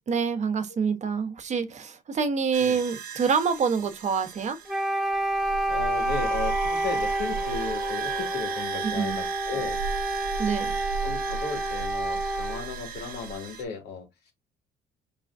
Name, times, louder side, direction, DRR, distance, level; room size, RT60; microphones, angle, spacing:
voice 1, 0.1-4.6 8.9-9.2 10.4-10.7, right 6 dB, 45° right, 1.0 m, -26 dB
sound 1, 2.5-13.6, right 7 dB, 60° right, 1.3 m, -36 dB
Wind instrument woodwind instrument, 4.7-12.7, right 1 dB, 5° right, 0.7 m, -29 dB
voice 2, 5.7-9.8 11.0-14.3, left 5 dB, 70° left, 2.4 m, -35 dB
5.3 x 3.3 x 2.6 m
cardioid pair, 110°, 17 cm